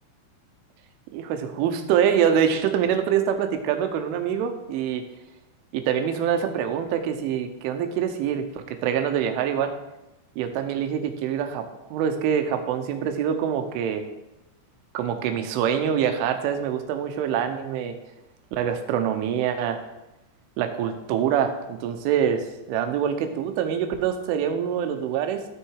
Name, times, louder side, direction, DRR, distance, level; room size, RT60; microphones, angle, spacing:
voice 1, 1.1-5.0 5.7-9.7 10.4-14.1 14.9-18.0 18.5-19.8 20.6-25.5, right 8 dB, 80° right, 7 dB, 3.4 m, -25 dB
14.0 x 6.4 x 4.8 m, 0.94 s
omnidirectional pair, 5.6 m